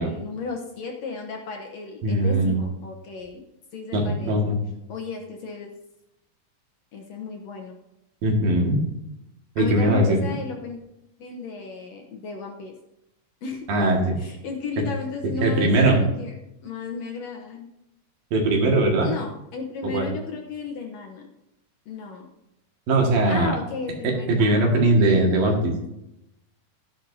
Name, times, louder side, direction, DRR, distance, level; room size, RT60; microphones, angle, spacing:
voice 1, 0.0-3.4 3.7-4.4 4.9-5.7 6.9-7.8 9.6-10.8 11.2-12.7 13.4-13.7 14.2-16.4 16.6-17.7 19.0-21.3 21.9-22.3 23.3-25.6, left 4 dB, 65° left, 2 dB, 1.8 m, -34 dB
voice 2, 2.0-2.6 3.9-4.6 8.2-8.8 9.6-10.2 13.7-14.2 15.4-16.0 18.3-19.1 19.8-20.1 22.9-23.5 24.0-25.8, right 2 dB, 90° right, 0 dB, 3.7 m, -20 dB
13.5 x 10.5 x 2.8 m, 0.87 s
omnidirectional pair, 4.0 m